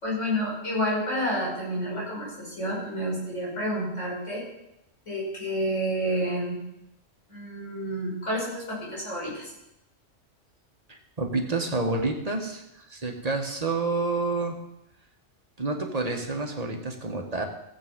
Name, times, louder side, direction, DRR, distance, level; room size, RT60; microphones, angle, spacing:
voice 1, 0.0-4.5 5.1-6.6 7.3-9.5, equal, 75° left, -5 dB, 5.8 m, -29 dB
voice 2, 10.9-14.6 15.6-17.5, right 3 dB, 30° right, 3 dB, 1.5 m, -29 dB
15.5 x 8.0 x 5.3 m, 0.88 s
omnidirectional pair, 1.3 m